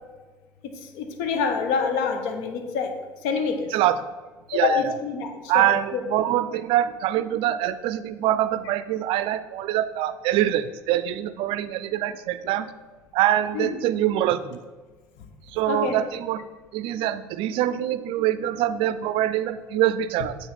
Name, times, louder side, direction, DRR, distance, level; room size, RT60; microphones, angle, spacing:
voice 1, 0.7-3.7 4.5-6.0 13.5-13.8 15.7-16.0, left 5 dB, 70° left, 6 dB, 0.9 m, -27 dB
voice 2, 4.5-4.8 5.5-12.7 13.1-14.6 15.5-16.4 16.7-20.4, right 12 dB, 60° right, 14 dB, 0.4 m, -24 dB
8.1 x 3.3 x 4.2 m, 1.3 s
hypercardioid pair, 65°, 10 cm